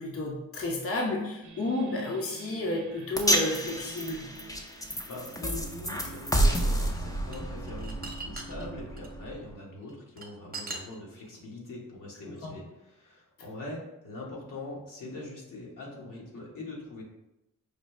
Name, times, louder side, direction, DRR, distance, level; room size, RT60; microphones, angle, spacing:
voice 1, 0.0-4.3 12.4-12.6, left 2 dB, 45° left, -1 dB, 0.8 m, -31 dB
sound 1, 1.4-10.8, right 5 dB, 70° right, 0.7 m, -48 dB
sound 2, 3.2-9.5, equal, 10° left, 0.6 m, -30 dB
voice 2, 5.1-17.0, left 2 dB, 75° left, -4 dB, 1.2 m, -42 dB
sound 3, 7.0-9.1 9.8-11.3, right 3 dB, 30° right, 0.7 m, -40 dB
5.1 x 2.2 x 3.1 m, 0.90 s
cardioid pair, 55°, 32 cm